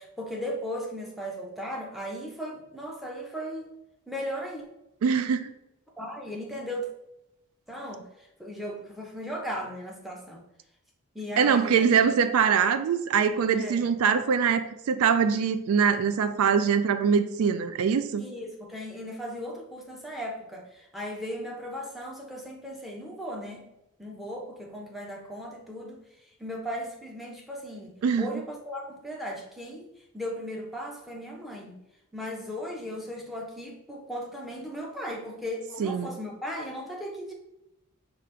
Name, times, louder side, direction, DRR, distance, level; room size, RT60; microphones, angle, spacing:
voice 1, 0.0-3.7 4.1-4.6 6.0-6.9 7.7-10.4 11.1-11.9 13.5-13.9 18.1-23.6 24.0-26.0 26.4-31.8 32.1-37.3, equal, ahead, -1 dB, 0.6 m, -37 dB
voice 2, 5.0-5.5 11.4-18.2 28.0-28.3 35.8-36.1, right 6 dB, 80° right, 11 dB, 0.3 m, -23 dB
4.9 x 2.5 x 4.4 m, 0.89 s
head